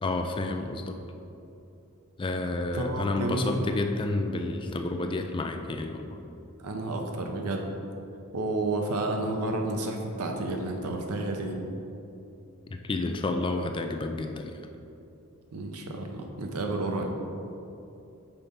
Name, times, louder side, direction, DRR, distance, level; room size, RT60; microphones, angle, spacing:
voice 1, 0.0-1.0 2.2-6.2 12.8-14.6, left 2 dB, 20° left, 5 dB, 0.3 m, -30 dB
voice 2, 2.7-3.5 6.6-7.7 8.3-11.6 15.5-17.1, right 2 dB, 90° right, 3 dB, 0.7 m, -31 dB
5.8 x 4.1 x 5.2 m, 2.8 s
head